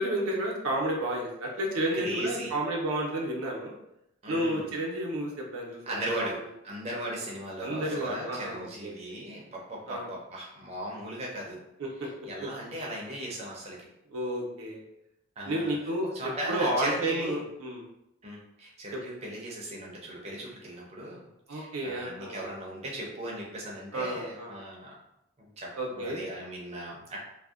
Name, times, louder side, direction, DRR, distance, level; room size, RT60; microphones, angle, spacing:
voice 1, 0.0-3.7 4.3-6.4 7.6-9.2 9.9-10.1 11.8-12.1 12.4-12.5 14.1-14.8 15.5-17.8 18.9-19.0 21.5-22.5 23.9-24.5 25.7-26.2, right 1 dB, 90° right, -1 dB, 0.5 m, -31 dB
voice 2, 2.0-2.5 4.2-4.7 5.9-6.4 6.6-11.6 12.2-13.8 15.4-15.7 16.1-17.4 18.2-21.2 21.5-24.9 25.6-27.2, right 1 dB, 30° right, -3 dB, 0.5 m, -37 dB
2.5 x 2.0 x 2.3 m, 0.85 s
head